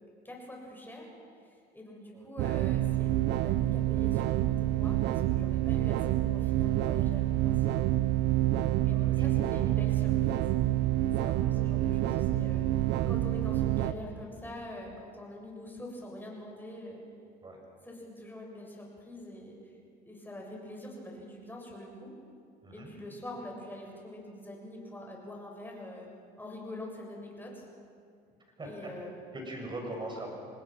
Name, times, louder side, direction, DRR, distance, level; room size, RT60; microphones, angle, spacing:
voice 1, 0.2-1.1 1.4-7.8 8.8-10.9 11.2-17.0 17.8-19.7 20.0-22.1 22.7-26.1 26.4-27.7 28.6-29.3, left 1 dB, 10° left, -1 dB, 7.1 m, -45 dB
sound 1, 2.4-13.9, right 14 dB, 70° right, 0.9 m, -27 dB
voice 2, 8.7-9.3 9.6-9.7 17.4-17.6 22.6-22.9 28.6-28.8 29.3-30.3, right 1 dB, 25° right, 1 dB, 7.0 m, -41 dB
27.0 x 19.5 x 6.2 m, 2.4 s
supercardioid pair, 85°, 18 cm